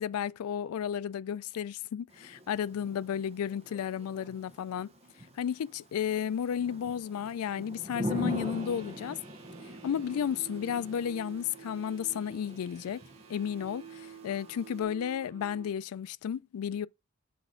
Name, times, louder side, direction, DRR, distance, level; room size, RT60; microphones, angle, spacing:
voice 1, 0.0-4.9 5.4-9.2 9.8-13.0 13.3-16.9, left 8 dB, 90° left, 0.3 m, -33 dB
Thunder / Rain, 2.1-14.8, equal, 30° right, 0.9 m, -43 dB
sound 1, 8.3-15.7, right 7 dB, 90° right, 0.9 m, -50 dB
6.2 x 3.4 x 5.6 m
head